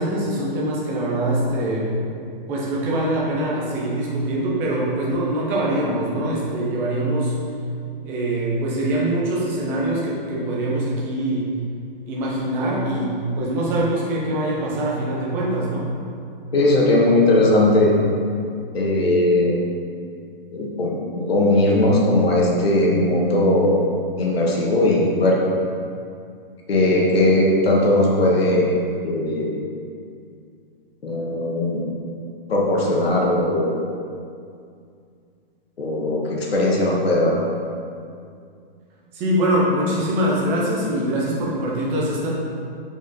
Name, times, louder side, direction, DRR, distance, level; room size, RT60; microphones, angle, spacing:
voice 1, 0.0-1.9 2.5-7.3 8.0-11.5 12.1-15.9 39.1-42.3, right 1 dB, 10° right, -5 dB, 0.4 m, -23 dB
voice 2, 16.5-17.9 18.7-19.6 20.5-23.8 24.2-25.4 26.7-28.6 29.0-29.5 31.0-31.8 32.5-33.8 35.8-37.3, left 1 dB, 85° left, -3 dB, 1.6 m, -18 dB
6.5 x 4.9 x 4.0 m, 2.3 s
hypercardioid pair, 160°, 29 cm